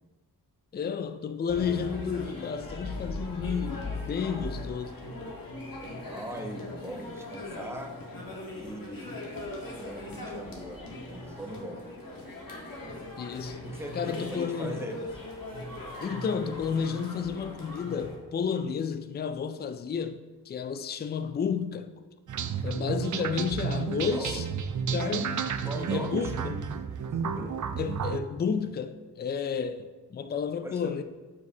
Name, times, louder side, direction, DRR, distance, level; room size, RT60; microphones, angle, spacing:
voice 1, 0.7-4.9 13.2-13.6 14.0-14.8 16.0-21.9 22.6-24.4 24.9-25.5 25.9-26.6 27.8-31.0, left 6 dB, 25° left, 0.4 m, -31 dB
sound 1, 1.5-18.2, left 1 dB, 55° left, 1.5 m, -39 dB
voice 2, 6.0-8.0 8.6-9.3 9.7-11.9 13.6-15.0 24.1-24.4 25.6-26.5 26.8-27.6 30.6-31.0, right 1 dB, 5° right, 1.0 m, -41 dB
sound 2, 22.3-28.2, right 6 dB, 50° right, 0.5 m, -31 dB
8.2 x 4.6 x 2.8 m
cardioid pair, 60°, 41 cm